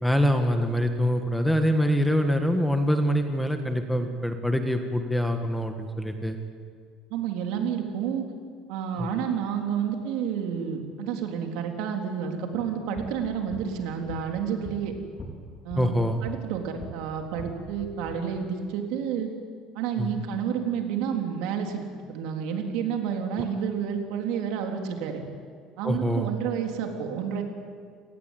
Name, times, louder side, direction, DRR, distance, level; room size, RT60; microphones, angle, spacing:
voice 1, 0.0-6.4 8.9-9.1 15.8-16.2 20.0-20.1 23.4-23.5 25.8-26.3, equal, ahead, 5 dB, 1.4 m, -25 dB
voice 2, 7.1-8.2 8.7-14.9 15.6-15.9 16.2-19.3 19.8-21.8 22.1-25.2 25.8-27.4, right 7 dB, 70° right, 3 dB, 3.7 m, -30 dB
sound 1, 12.8-17.0 17.3-18.1, left 1 dB, 30° left, 4.1 m, -42 dB
28.5 x 19.0 x 9.2 m, 2.1 s
cardioid pair, 170°, 0 cm